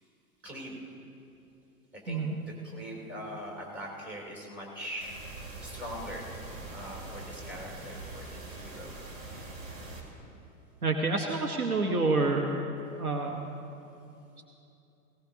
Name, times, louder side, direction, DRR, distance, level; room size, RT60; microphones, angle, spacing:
voice 1, 0.4-0.8 1.9-5.2 5.6-6.2 6.7-9.0, equal, 25° right, -2 dB, 3.4 m, -42 dB
sound 1, 5.0-10.0, right 2 dB, 55° right, 2.8 m, -43 dB
voice 2, 10.8-12.5 13.0-13.4, right 3 dB, 75° right, 2 dB, 1.2 m, -28 dB
18.5 x 18.0 x 2.8 m, 2.8 s
figure-of-eight pair, 100°, 44 cm